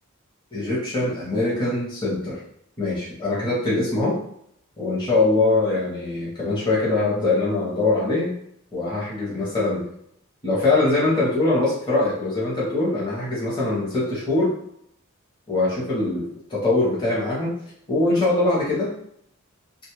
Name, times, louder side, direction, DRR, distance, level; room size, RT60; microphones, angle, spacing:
voice 1, 0.5-2.4 2.8-4.2 4.8-8.3 8.7-9.8 10.4-14.5 15.5-17.6 17.9-18.9, left 2 dB, 20° left, -7 dB, 0.7 m, -22 dB
2.9 x 2.3 x 3.1 m, 0.72 s
head